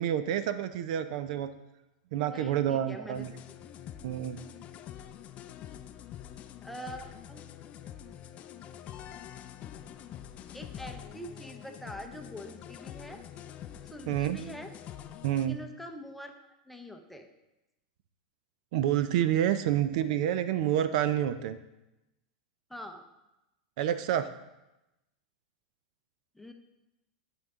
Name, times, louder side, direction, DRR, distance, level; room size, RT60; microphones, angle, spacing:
voice 1, 0.0-1.5 2.1-3.3 4.0-4.4 14.1-14.4 15.2-15.6 18.7-21.6 23.8-24.3, right 11 dB, 65° right, 12 dB, 0.5 m, -28 dB
voice 2, 2.3-3.3 6.6-7.4 10.5-13.2 13.8-14.7 15.5-16.3 16.7-17.3 22.7-23.1 26.3-26.5, equal, ahead, 5 dB, 0.7 m, -44 dB
sound 1, 3.1-15.5, left 10 dB, 35° left, 0.4 m, -46 dB
11.5 x 5.4 x 3.6 m, 0.96 s
supercardioid pair, 135°, 4 cm